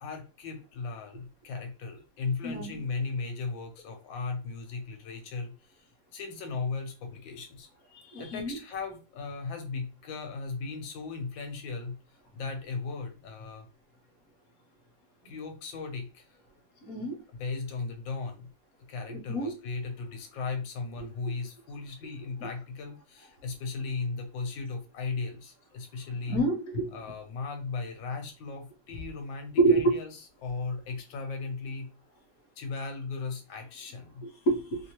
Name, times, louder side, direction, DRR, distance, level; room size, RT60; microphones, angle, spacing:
voice 1, 0.0-7.7 8.2-12.0 12.3-13.7 15.2-16.3 17.4-18.5 18.9-26.4 26.9-31.9 32.6-34.2, left 4 dB, 70° left, 4 dB, 1.4 m, -37 dB
voice 2, 2.4-2.8 7.9-8.6 16.9-17.2 19.1-19.5 21.3-21.4 22.4-22.5 26.3-26.9 29.6-29.9 34.2-34.8, right 3 dB, 55° left, 1 dB, 1.2 m, -27 dB
3.4 x 2.7 x 2.9 m, 0.34 s
omnidirectional pair, 2.2 m